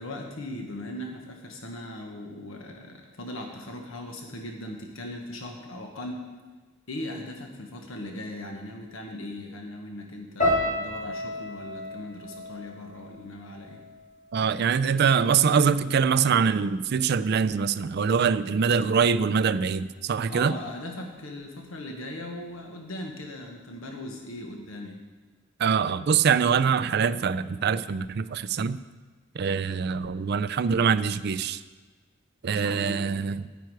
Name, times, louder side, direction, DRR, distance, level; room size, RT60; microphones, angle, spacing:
voice 1, 0.0-6.3 6.9-13.8 20.3-25.0 32.5-33.1, left 1 dB, 80° left, 2 dB, 1.3 m, -39 dB
sound 1, 10.4-14.6 14.9-15.6 16.2-16.5, left 1 dB, 40° left, 3.4 m, -32 dB
voice 2, 14.3-20.5 25.6-28.8 29.4-31.6 32.4-33.5, right 6 dB, 50° right, 14 dB, 0.4 m, -24 dB
10.5 x 9.3 x 4.7 m, 1.3 s
head